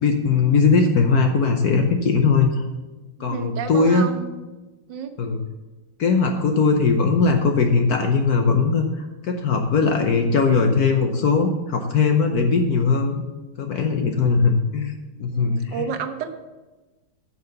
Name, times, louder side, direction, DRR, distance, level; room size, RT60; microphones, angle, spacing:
voice 1, 0.0-2.6 3.2-4.1 5.2-5.4 6.0-13.2 13.6-14.9 15.2-15.9, left 4 dB, 60° left, 4 dB, 1.1 m, -19 dB
voice 2, 3.2-4.3 4.9-5.1 15.3-16.3, right 6 dB, 65° right, 8 dB, 1.5 m, -31 dB
8.5 x 6.5 x 6.6 m, 1.1 s
omnidirectional pair, 2.2 m